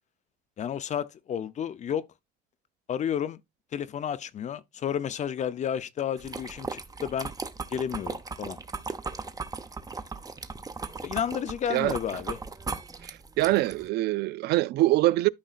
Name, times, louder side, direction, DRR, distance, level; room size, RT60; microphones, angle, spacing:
voice 1, 0.6-2.1 2.9-3.4 3.7-7.3 7.7-8.6 11.0-12.4, left 9 dB, 45° left, 0.6 m, -31 dB
sound 1, 6.2-13.9, right 4 dB, 20° right, 0.9 m, -37 dB
voice 2, 13.0-15.3, right 17 dB, 75° right, 0.4 m, -24 dB
13.0 x 5.4 x 2.5 m
cardioid pair, 110°, 17 cm